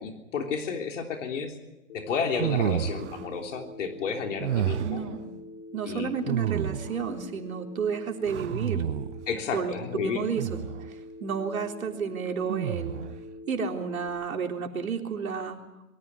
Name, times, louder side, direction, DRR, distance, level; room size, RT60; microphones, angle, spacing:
voice 1, 0.0-1.5 1.9-5.0 5.9-6.1 9.3-10.2, left 5 dB, 60° left, 3 dB, 3.4 m, -31 dB
Telephone, 1.9-14.1, left 1 dB, 40° left, 4.2 m, -45 dB
sound 1, 2.3-3.3 4.4-5.1 6.3-7.1 8.3-9.3 10.3-10.9 12.5-13.2, right 10 dB, 55° right, 1.2 m, -30 dB
voice 2, 4.8-5.3 5.7-8.8 9.5-13.0 13.5-15.6, right 6 dB, 80° right, 3 dB, 3.8 m, -31 dB
23.0 x 14.5 x 9.6 m, 1.0 s
hypercardioid pair, 140°, 41 cm